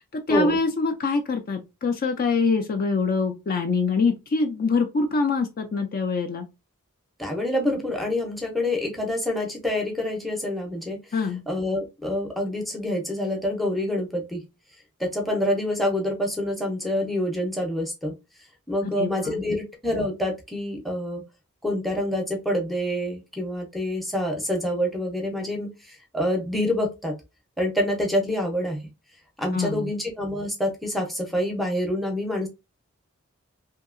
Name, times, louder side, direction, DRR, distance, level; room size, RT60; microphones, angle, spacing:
voice 1, 0.1-6.5 11.1-11.4 18.8-19.4 29.5-29.9, left 4 dB, 40° left, 0.4 m, -24 dB
voice 2, 7.2-11.0 11.5-14.4 15.0-18.1 18.7-21.2 21.6-27.1 27.6-28.8 29.4-32.5, left 1 dB, ahead, 0.6 m, -27 dB
2.8 x 2.7 x 2.5 m
head